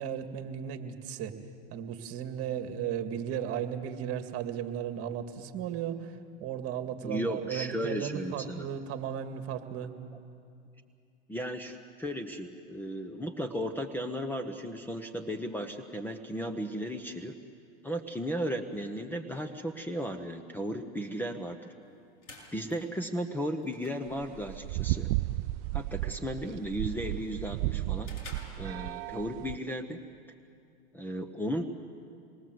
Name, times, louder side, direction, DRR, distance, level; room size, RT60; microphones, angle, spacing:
voice 1, 0.0-1.3 1.7-9.9, right 9 dB, 40° right, 7 dB, 2.2 m, -35 dB
voice 2, 7.0-8.7 11.3-17.4 17.8-21.6 22.5-25.1 25.7-28.1 28.6-30.0 30.9-31.6, equal, 5° left, 8 dB, 1.0 m, -35 dB
sound 1, 21.8-29.3, left 2 dB, 50° left, 7.4 m, -54 dB
sound 2, 24.1-29.6, right 19 dB, 55° right, 0.5 m, -34 dB
27.0 x 21.0 x 7.9 m, 2.5 s
hypercardioid pair, 115°, 36 cm